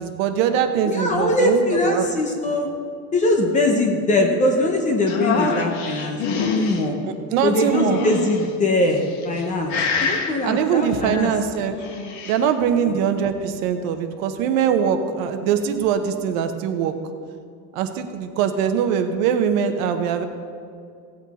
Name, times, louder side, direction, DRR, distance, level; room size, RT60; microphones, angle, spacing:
voice 1, 0.0-2.0 7.1-8.0 10.4-11.7 12.2-16.9 17.7-20.2, right 8 dB, 60° right, 7 dB, 1.1 m, -22 dB
voice 2, 0.8-2.7 3.1-6.9 7.4-9.7 10.0-11.3 12.9-13.0, left 1 dB, 15° left, 2 dB, 0.7 m, -21 dB
sound 1, 5.1-6.8 7.6-8.5 9.1-9.4 9.7-10.3 11.6-12.4, left 5 dB, 50° left, 1.4 m, -25 dB
16.5 x 8.1 x 4.1 m, 2.3 s
cardioid pair, 170°, 46 cm